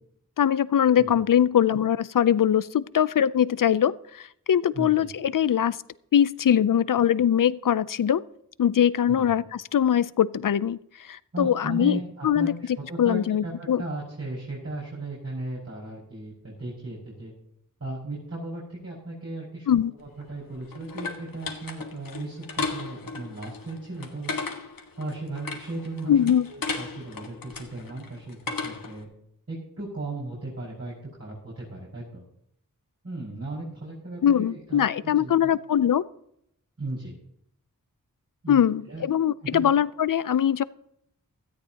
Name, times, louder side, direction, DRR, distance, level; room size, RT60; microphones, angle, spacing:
voice 1, 0.4-5.8 6.1-8.2 8.6-12.5 13.0-13.8 19.7-19.9 26.1-26.5 34.2-36.0 38.5-40.6, left 9 dB, 70° left, 18 dB, 0.6 m, -22 dB
voice 2, 4.7-5.1 9.1-9.3 11.3-17.3 17.8-19.7 19.9-24.3 25.0-28.4 28.6-29.1 29.5-32.2 33.0-35.5 36.8-37.1 38.4-39.0 39.4-39.7, right 2 dB, 50° right, -6 dB, 5.5 m, -36 dB
sound 1, 20.0-29.0, left 4 dB, 90° left, 1.7 m, -36 dB
17.0 x 13.5 x 2.9 m, 0.74 s
wide cardioid pair, 70°, 33 cm